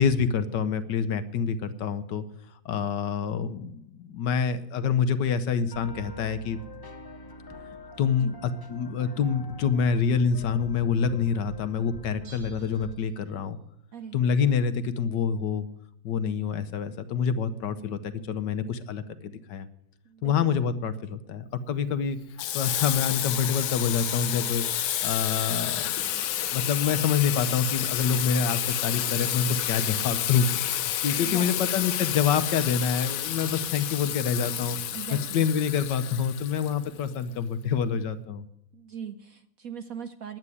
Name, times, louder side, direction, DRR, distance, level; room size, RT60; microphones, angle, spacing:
voice 1, 0.0-2.2 2.6-6.6 8.0-13.6 14.1-15.7 16.0-19.7 20.2-22.2 22.5-24.6 25.0-26.2 26.5-34.8 35.1-38.4, left 6 dB, 65° left, 11 dB, 1.4 m, -27 dB
sound 1, 5.7-13.0, left 2 dB, 25° left, 0.5 m, -45 dB
Bell, 12.2-13.6 13.9-14.0, right 5 dB, 90° right, 3.0 m, -55 dB
voice 2, 20.1-20.6 31.2-31.6 34.9-35.5 38.7-40.4, right 8 dB, 60° right, 9 dB, 0.9 m, -40 dB
Water tap faucet / Sink (filling or washing), 22.4-37.1, left 12 dB, 90° left, 1.5 m, -30 dB
10.5 x 8.8 x 9.7 m, 0.78 s
omnidirectional pair, 2.1 m